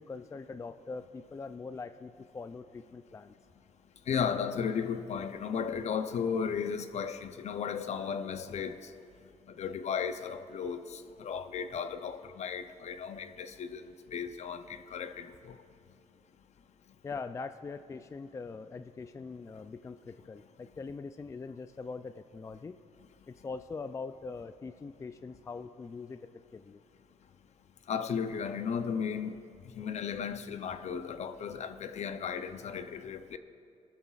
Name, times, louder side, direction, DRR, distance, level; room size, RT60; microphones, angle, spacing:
voice 1, 0.0-3.3 17.0-22.8 23.3-26.2 26.5-26.8, left 4 dB, 20° left, 0.3 m, -42 dB
voice 2, 4.1-8.8 9.5-15.6 27.9-29.4 29.8-33.4, left 7 dB, 55° left, 0.6 m, -35 dB
19.5 x 12.5 x 2.4 m
cardioid pair, 100°, 14 cm